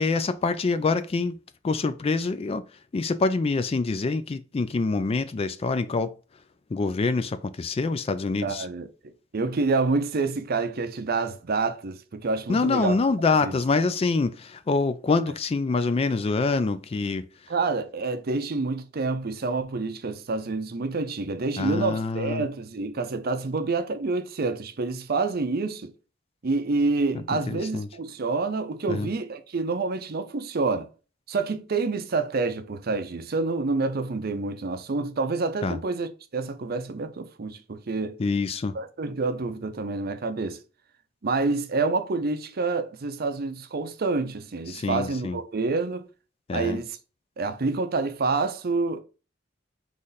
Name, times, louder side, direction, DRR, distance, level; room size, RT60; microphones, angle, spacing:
voice 1, 0.0-1.4 1.6-2.6 2.9-6.1 6.7-8.7 12.5-17.2 21.6-22.4 27.3-27.9 28.9-29.1 35.6-35.8 38.2-38.8 44.7-45.4 46.5-46.8, left 3 dB, 30° left, 0.3 m, -25 dB
voice 2, 8.4-12.9 13.4-13.6 17.5-25.9 26.4-30.9 31.3-38.2 38.7-40.6 41.2-46.1 46.5-47.0 47.4-49.0, right 3 dB, 50° right, 0.6 m, -28 dB
3.9 x 3.2 x 4.0 m
head